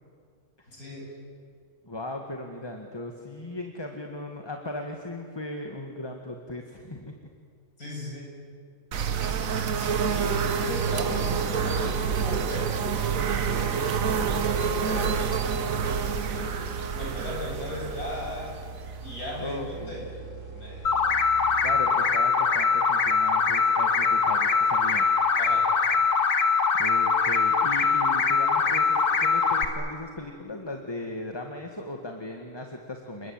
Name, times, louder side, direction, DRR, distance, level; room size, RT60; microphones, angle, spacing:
voice 1, 0.7-1.1 7.8-8.4 9.5-16.5 16.9-18.5 19.0-20.9 25.4-25.7, left 1 dB, 70° left, -2 dB, 8.1 m, -37 dB
voice 2, 1.8-7.3 19.4-20.1 21.6-25.1 26.8-33.3, left 1 dB, 15° left, 3 dB, 1.9 m, -37 dB
sound 1, 8.9-19.5, right 6 dB, 60° right, 1.5 m, -28 dB
sound 2, 10.7-22.4, right 4 dB, 80° right, 3.9 m, -42 dB
sound 3, 20.9-29.7, left 5 dB, 85° left, 2.3 m, -22 dB
29.5 x 21.0 x 9.0 m, 2.2 s
omnidirectional pair, 1.6 m